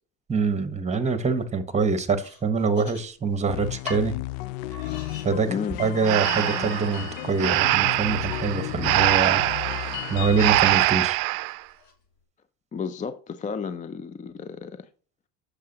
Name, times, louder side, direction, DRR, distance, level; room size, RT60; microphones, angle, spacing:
voice 1, 0.3-4.2 5.2-5.5 5.8-9.4 10.1-11.2, right 4 dB, 15° right, 1.1 m, -25 dB
sound 1, 2.2-3.4 3.9-4.1 4.7-5.3 5.7-6.2 6.7-6.8 7.4-9.0 10.2-10.9 11.5-11.9, left 3 dB, 55° left, 2.4 m, -42 dB
sound 2, 3.5-10.9, left 18 dB, 75° left, 0.5 m, -33 dB
voice 2, 5.5-5.8 12.7-14.9, left 6 dB, 20° left, 0.4 m, -32 dB
Breathing, 6.0-11.6, right 20 dB, 80° right, 0.5 m, -23 dB
7.3 x 6.6 x 2.8 m
supercardioid pair, 95°, 43 cm